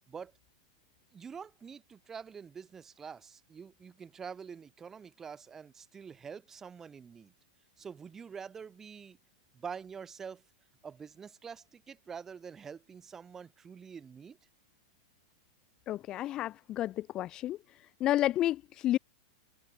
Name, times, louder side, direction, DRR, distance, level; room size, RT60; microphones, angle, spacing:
voice 1, 1.1-7.3 7.8-9.2 9.5-10.4 10.8-14.4, right 6 dB, 10° right, 1.8 m, -46 dB
voice 2, 15.9-17.6 18.0-19.0, left 13 dB, 20° left, 0.8 m, -30 dB
supercardioid pair, 170°, 3 cm